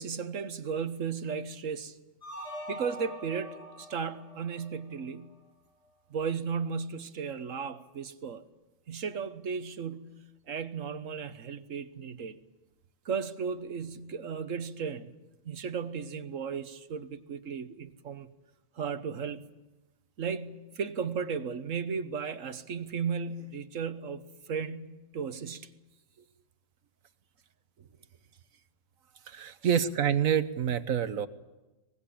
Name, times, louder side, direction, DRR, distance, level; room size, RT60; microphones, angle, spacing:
voice 1, 0.0-2.0 2.7-5.3 6.1-8.4 8.9-10.1 10.5-12.4 13.0-15.1 15.4-18.3 18.8-19.4 20.2-25.7, right 6 dB, 70° right, 1.5 m, -35 dB
sound 1, 2.2-5.3, equal, 30° left, 4.6 m, -43 dB
voice 2, 29.3-31.3, right 8 dB, 85° right, 1.5 m, -27 dB
24.0 x 20.5 x 8.6 m
omnidirectional pair, 1.4 m